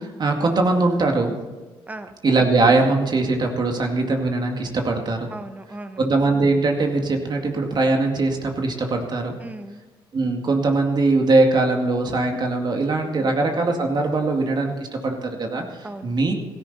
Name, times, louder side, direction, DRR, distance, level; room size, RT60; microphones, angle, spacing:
voice 1, 0.0-1.4 2.2-5.3 6.0-9.3 10.1-16.3, right 3 dB, 45° right, 2 dB, 2.3 m, -21 dB
voice 2, 1.9-2.2 5.3-6.1 9.4-9.8 13.2-13.4 15.8-16.1, right 1 dB, 15° right, 9 dB, 1.1 m, -37 dB
16.0 x 14.5 x 4.3 m, 1.2 s
supercardioid pair, 70°, 10 cm